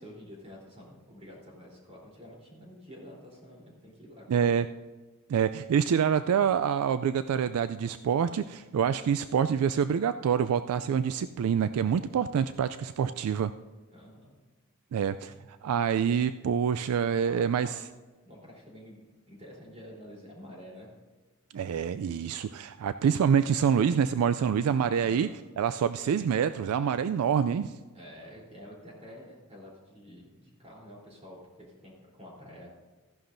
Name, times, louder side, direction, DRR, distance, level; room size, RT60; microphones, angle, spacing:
voice 1, 0.0-4.6 13.9-14.3 16.9-17.7 18.2-20.9 25.0-25.3 27.9-32.7, equal, 30° right, -3 dB, 3.6 m, -49 dB
voice 2, 4.3-4.7 5.3-13.5 14.9-15.3 15.6-17.8 21.5-25.3 25.6-27.7, right 7 dB, 70° right, 12 dB, 0.3 m, -26 dB
15.0 x 11.0 x 2.6 m, 1.3 s
head